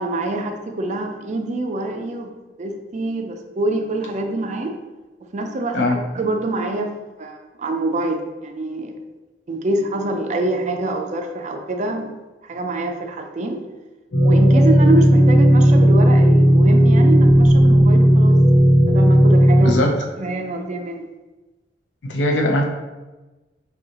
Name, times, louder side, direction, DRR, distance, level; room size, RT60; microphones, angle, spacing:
voice 1, 0.0-2.3 2.6-4.7 5.3-8.9 9.5-12.1 12.4-13.6 14.2-18.4 18.9-19.8 20.2-21.0, right 2 dB, 40° right, 4 dB, 0.4 m, -25 dB
sound 1, 14.1-19.7, equal, 55° left, 0.8 m, -13 dB
voice 2, 19.6-19.9 22.1-22.6, left 1 dB, 85° left, 1 dB, 0.6 m, -19 dB
5.2 x 2.3 x 2.9 m, 1.2 s
head